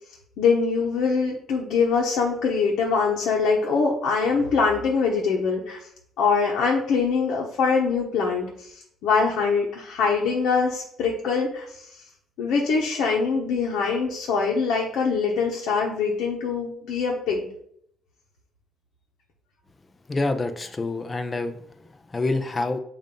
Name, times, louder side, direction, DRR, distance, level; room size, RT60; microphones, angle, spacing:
voice 1, 0.4-5.8 6.2-12.0 12.4-17.5, left 5 dB, 75° left, -2 dB, 0.9 m, -23 dB
voice 2, 20.1-22.8, left 2 dB, 20° left, 8 dB, 0.5 m, -27 dB
7.2 x 2.5 x 5.2 m, 0.69 s
cardioid pair, 145°, 0 cm